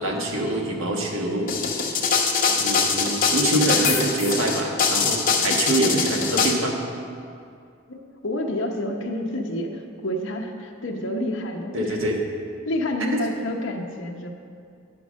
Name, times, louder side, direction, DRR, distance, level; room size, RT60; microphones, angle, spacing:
voice 1, 0.0-1.5 2.5-6.8 11.7-12.2 13.0-13.2, right 1 dB, 85° right, 0 dB, 1.4 m, -25 dB
sound 1, 1.5-6.5, left 5 dB, 45° left, 0.9 m, -22 dB
voice 2, 5.3-5.7 7.9-12.0 12.7-14.3, left 1 dB, 70° left, 2 dB, 0.9 m, -29 dB
10.5 x 4.7 x 6.2 m, 2.4 s
head